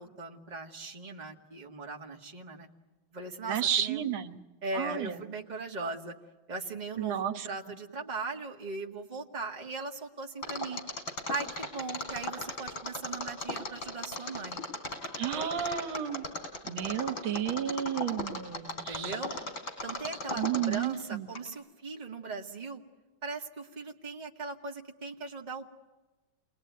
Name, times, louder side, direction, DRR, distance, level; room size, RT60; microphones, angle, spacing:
voice 1, 0.0-2.7 3.1-4.1 4.6-6.1 6.5-10.8 11.3-14.6 15.3-15.5 18.9-19.3 19.8-22.8 23.2-25.7, right 3 dB, 20° right, 1 dB, 1.8 m, -39 dB
voice 2, 3.5-4.4 4.7-5.1 7.0-7.5 15.2-16.2 16.6-19.2 20.4-21.3, right 10 dB, 80° right, 8 dB, 2.0 m, -32 dB
Mechanisms, 10.4-21.0 21.3-21.4, left 2 dB, 70° left, 5.9 m, -36 dB
28.5 x 20.5 x 9.4 m, 1.2 s
omnidirectional pair, 2.2 m